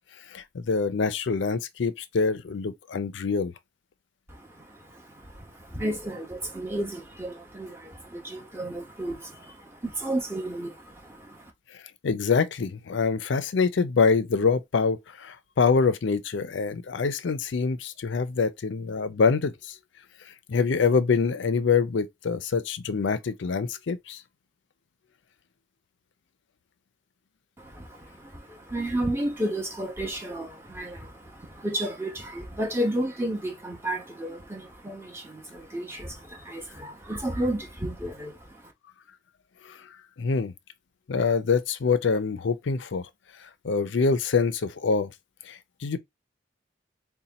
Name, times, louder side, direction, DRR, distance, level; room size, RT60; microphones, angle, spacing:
voice 1, 0.3-3.5 12.0-19.7 20.5-24.2 39.6-39.8 40.2-40.5 41.1-43.0 43.6-45.1 45.5-46.0, left 5 dB, 70° left, 0.5 m, -25 dB
voice 2, 4.3-11.5 27.6-38.7, right 1 dB, 15° right, 0.9 m, -33 dB
4.1 x 2.2 x 4.0 m
head